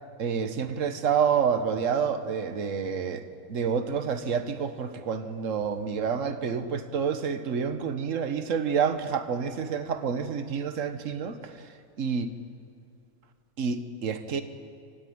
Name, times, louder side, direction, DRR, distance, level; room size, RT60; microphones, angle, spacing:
voice 1, 0.2-3.2 3.5-11.5 12.0-12.3 13.6-14.4, right 6 dB, 55° right, 9 dB, 1.5 m, -28 dB
26.0 x 14.5 x 9.5 m, 2.3 s
omnidirectional pair, 1.6 m